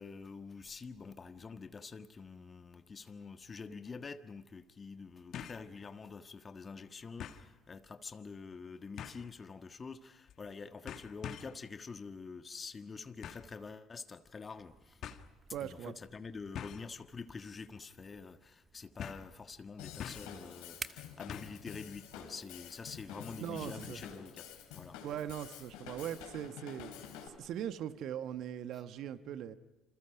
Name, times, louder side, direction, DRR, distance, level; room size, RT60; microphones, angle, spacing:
voice 1, 0.0-15.0 15.6-25.0, left 4 dB, 35° left, 1.4 m, -47 dB
sound 1, 3.4-3.5 5.3-5.7 6.1-6.2 7.2-7.5 9.0-9.3 10.3-10.5 10.9-11.6 13.2-13.5 14.5-14.6 15.0-15.2 16.5-16.9 17.4-17.7 17.9-18.0 19.0-19.3 20.0-20.4 21.3-21.6 21.9-22.0, left 9 dB, 55° left, 1.6 m, -45 dB
sound 2, 14.6-26.5, right 3 dB, 25° right, 1.3 m, -56 dB
voice 2, 15.5-15.9 23.4-24.0 25.0-29.5, right 10 dB, 60° right, 1.3 m, -40 dB
Drum kit / Drum, 19.8-27.3, left 9 dB, 70° left, 3.6 m, -49 dB
28.5 x 27.5 x 5.1 m
hypercardioid pair, 55°, 0 cm